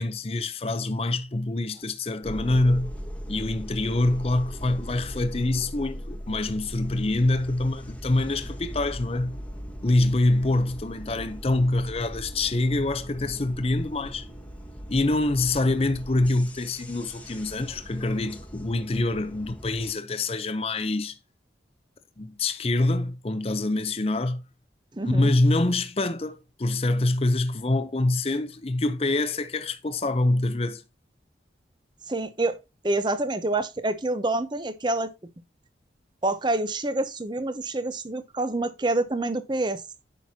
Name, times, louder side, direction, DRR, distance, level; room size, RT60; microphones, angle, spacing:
voice 1, 0.0-2.9 3.3-9.4 9.8-14.3 14.9-21.2 22.2-24.4 25.0-30.8, left 2 dB, 35° left, 0.6 m, -25 dB
sound 1, 2.2-19.9, equal, 10° left, 1.1 m, -39 dB
voice 2, 24.9-25.3 32.1-32.6 32.8-35.1 36.2-39.8, right 2 dB, 25° right, 0.7 m, -27 dB
9.0 x 5.9 x 2.8 m
head